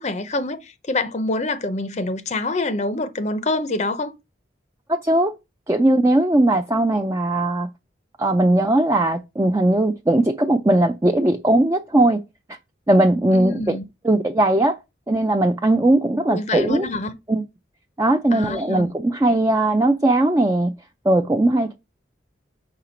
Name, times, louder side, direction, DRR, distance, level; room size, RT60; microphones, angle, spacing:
voice 1, 0.0-4.1 13.3-13.8 16.3-17.1 18.3-18.9, left 2 dB, 35° left, 0.5 m, -26 dB
voice 2, 4.9-5.3 5.7-7.7 8.2-12.2 12.9-13.8 14.0-14.8 15.1-16.9 17.3-17.4 18.0-20.7 21.0-21.8, right 1 dB, 15° right, 0.4 m, -19 dB
5.8 x 4.4 x 5.0 m
head